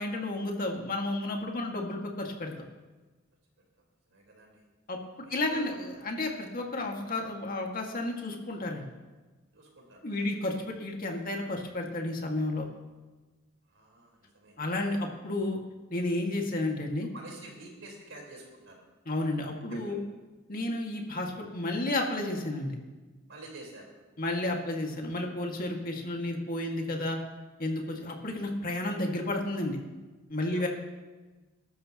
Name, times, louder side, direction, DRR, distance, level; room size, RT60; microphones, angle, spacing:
voice 1, 0.0-2.5 4.9-5.0 5.3-5.7 6.0-8.8 10.0-12.7 14.6-15.6 15.9-17.1 19.1-20.0 20.5-22.7 24.2-27.2 27.6-29.8 30.3-30.7, left 2 dB, 45° left, 1 dB, 2.0 m, -32 dB
voice 2, 3.8-4.6 5.2-5.7 5.9-6.2 9.5-10.4 13.6-14.5 17.0-18.8 19.7-20.0 23.3-23.9 30.5-30.7, right 2 dB, 75° right, -1 dB, 4.3 m, -49 dB
22.0 x 12.5 x 3.0 m, 1.2 s
head